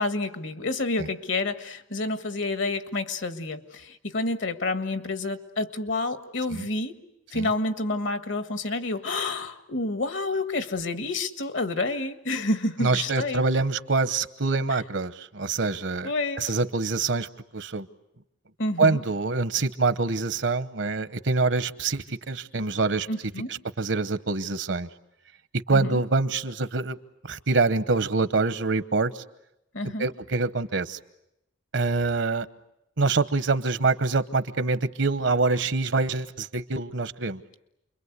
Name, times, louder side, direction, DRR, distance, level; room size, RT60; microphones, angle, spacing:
voice 1, 0.0-7.0 7.3-13.4 14.7-14.8 16.0-16.5 18.6-19.0 23.1-23.5 25.7-26.0 29.7-30.1, left 2 dB, 70° left, 9 dB, 1.6 m, -29 dB
voice 2, 12.8-16.1 16.4-17.9 18.8-23.1 23.5-24.9 25.7-27.0 27.2-29.2 30.0-31.0 31.7-32.5 33.0-37.4, right 3 dB, 65° right, 13 dB, 1.0 m, -25 dB
29.0 x 23.0 x 8.2 m, 0.85 s
head